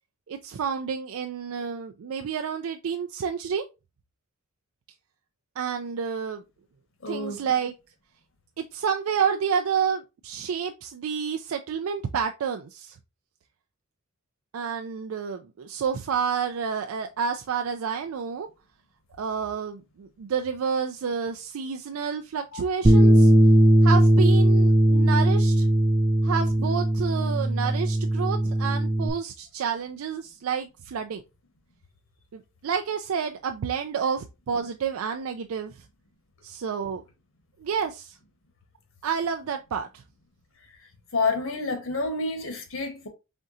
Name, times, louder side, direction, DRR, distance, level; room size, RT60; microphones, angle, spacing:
voice 1, 0.3-3.6 5.6-6.4 7.1-7.7 8.6-13.0 14.5-18.5 19.2-23.3 23.8-25.7 26.2-31.2 32.3-35.8 36.4-37.0 37.6-38.2 39.0-40.0, right 6 dB, 85° right, 0.4 m, -29 dB
voice 2, 7.0-7.4 22.5-22.6 41.1-43.1, left 3 dB, 70° left, 1.1 m, -28 dB
Bass guitar, 22.8-29.1, right 1 dB, 20° right, 0.5 m, -19 dB
4.3 x 3.7 x 2.6 m
head